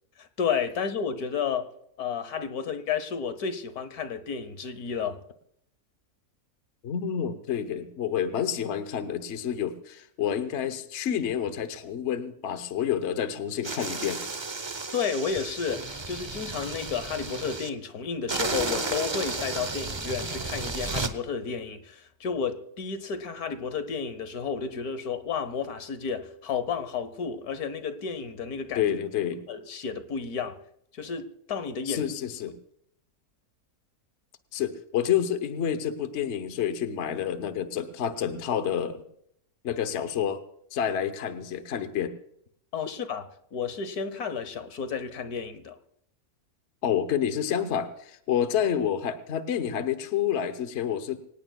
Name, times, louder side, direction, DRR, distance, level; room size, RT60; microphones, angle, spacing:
voice 1, 0.2-1.7 2.0-5.2 14.9-28.9 29.5-30.6 30.9-32.0 42.7-45.8, left 6 dB, 75° left, 1.6 m, -32 dB
voice 2, 6.8-14.2 28.7-29.4 31.9-32.6 34.5-39.0 39.6-40.4 40.7-42.1 46.8-51.2, left 9 dB, 55° left, 1.1 m, -29 dB
sound 1, 13.6-17.7 18.3-21.1, right 3 dB, 30° right, 0.5 m, -33 dB
24.5 x 18.0 x 2.3 m
omnidirectional pair, 1.6 m